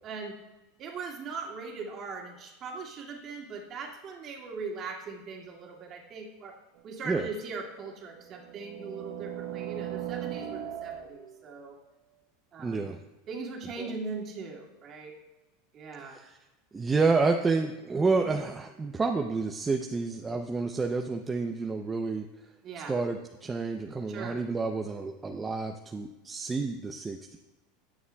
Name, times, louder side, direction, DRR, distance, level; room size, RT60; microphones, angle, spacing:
voice 1, 0.0-0.4 0.8-6.5 6.8-11.8 12.5-12.9 13.3-15.1 15.7-16.2 22.6-22.9 24.1-24.4, right 4 dB, 40° right, 0 dB, 2.2 m, -40 dB
sound 1, 6.8-6.9 7.9-11.4, right 11 dB, 80° right, 1.1 m, -38 dB
voice 2, 12.6-13.0 13.8-13.9 16.0-16.4 16.7-22.3 22.9-27.4, right 4 dB, 15° right, 4 dB, 0.6 m, -29 dB
20.5 x 7.1 x 2.3 m, 1.1 s
supercardioid pair, 125°, 0 cm